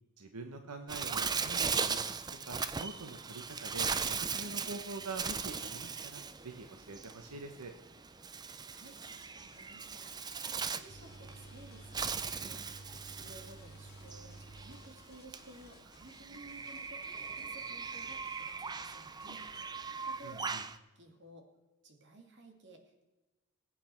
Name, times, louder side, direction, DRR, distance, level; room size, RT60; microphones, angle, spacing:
voice 1, 0.2-2.0 2.4-7.7 20.2-20.6, right 3 dB, 90° right, 6 dB, 1.1 m, -45 dB
Bird, 0.9-20.8, right 5 dB, 20° right, 0.5 m, -39 dB
voice 2, 8.6-19.4 20.0-21.5 21.8-23.0, right 2 dB, 50° right, 4 dB, 2.4 m, -56 dB
sound 1, 8.8-19.8, left 5 dB, 45° left, 1.2 m, -63 dB
sound 2, 10.9-15.3 15.6-15.7, right 2 dB, 90° left, 2.0 m, -52 dB
21.0 x 8.8 x 4.5 m, 1.1 s
head